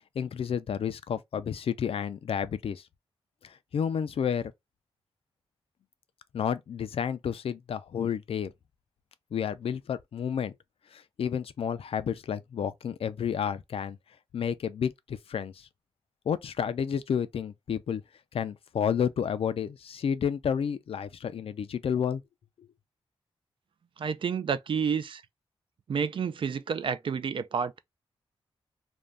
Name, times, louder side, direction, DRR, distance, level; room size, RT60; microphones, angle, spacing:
voice 1, 0.2-2.8 3.4-4.5 6.3-8.5 9.3-10.5 10.9-14.0 14.3-15.7 16.3-18.0 18.3-22.2, left 8 dB, 70° left, 0.4 m, -31 dB
voice 2, 24.0-25.2 25.9-27.8, right 6 dB, 55° right, 0.3 m, -30 dB
2.5 x 2.2 x 3.3 m
wide cardioid pair, 90°, 10 cm